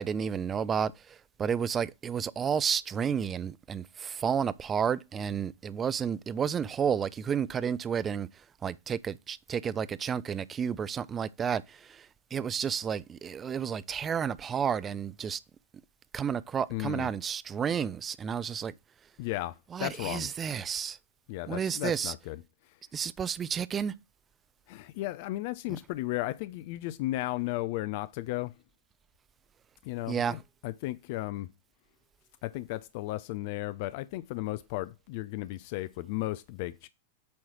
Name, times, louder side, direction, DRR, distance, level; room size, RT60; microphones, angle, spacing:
voice 1, 0.0-8.3 8.6-15.4 16.1-18.7 19.7-21.0 21.5-22.1 22.9-23.9 30.1-30.4, right 7 dB, 25° right, 0.5 m, -31 dB
voice 2, 16.7-17.1 19.2-20.3 21.3-22.4 24.7-28.5 29.8-31.5 32.4-36.9, left 17 dB, 50° left, 0.4 m, -35 dB
8.5 x 3.1 x 6.1 m
figure-of-eight pair, 95°, 0 cm